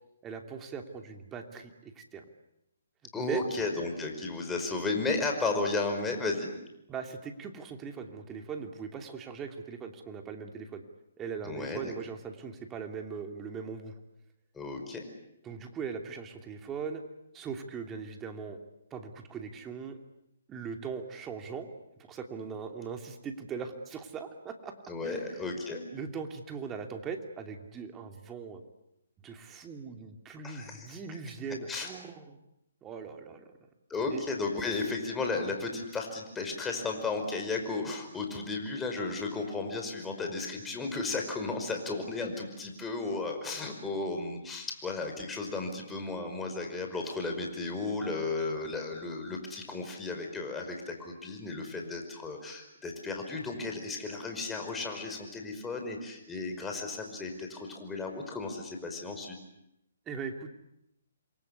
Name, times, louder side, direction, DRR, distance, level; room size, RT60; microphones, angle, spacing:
voice 1, 0.2-2.2 3.1-3.4 6.9-10.8 11.2-13.9 15.4-17.0 17.3-18.6 18.9-20.0 20.5-21.7 22.0-24.7 25.0-25.6 25.9-28.6 29.2-32.4 32.8-33.5 34.1-34.2 60.1-60.5, right 5 dB, 15° right, 4 dB, 2.9 m, -40 dB
voice 2, 3.1-6.5 11.5-11.9 14.5-15.0 24.9-25.9 30.4-30.8 31.7-31.9 33.9-59.4, left 3 dB, 10° left, 3 dB, 5.3 m, -34 dB
28.5 x 23.0 x 8.4 m, 0.83 s
hypercardioid pair, 145°, 0 cm